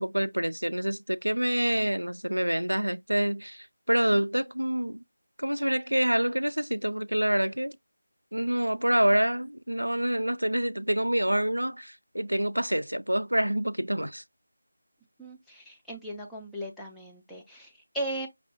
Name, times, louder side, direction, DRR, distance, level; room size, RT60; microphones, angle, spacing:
voice 1, 0.0-5.0 5.4-7.8 8.3-14.2, right 1 dB, 85° right, 0.3 m, -27 dB
voice 2, 15.2-18.3, right 1 dB, ahead, 0.5 m, -37 dB
5.3 x 2.1 x 2.9 m
figure-of-eight pair, 165°, 0 cm